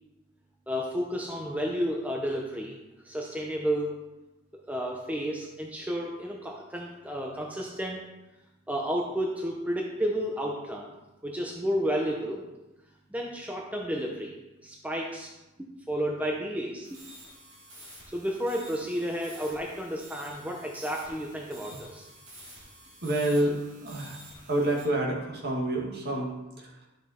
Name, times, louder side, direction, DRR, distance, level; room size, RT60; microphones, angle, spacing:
voice 1, 0.7-2.8 3.0-4.0 4.5-8.0 8.7-10.9 11.2-12.4 13.1-14.4 14.6-15.3 15.9-16.9 18.1-22.1, equal, 5° right, -1 dB, 0.8 m, -31 dB
sound 1, 16.8-24.9, equal, 80° right, 3.0 m, -49 dB
voice 2, 23.0-23.6 23.8-24.2 24.5-26.9, right 1 dB, 50° right, -2 dB, 2.1 m, -28 dB
11.5 x 6.1 x 4.4 m, 1.0 s
head